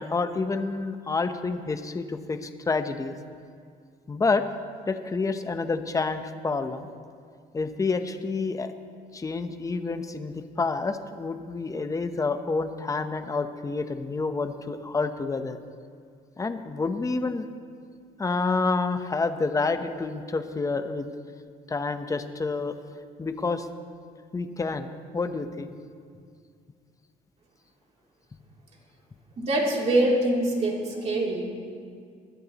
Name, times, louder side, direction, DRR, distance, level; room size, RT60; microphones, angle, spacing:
voice 1, 0.0-3.1 4.1-4.4 4.9-6.9 7.5-8.7 9.1-15.6 16.4-17.5 18.2-21.1 21.7-22.7 23.2-23.7 24.3-24.9 25.1-25.7, left 3 dB, 20° left, 9 dB, 0.8 m, -28 dB
voice 2, 29.4-31.5, right 1 dB, 40° right, -2 dB, 3.0 m, -24 dB
21.0 x 12.0 x 3.0 m, 2.2 s
cardioid pair, 110°, 17 cm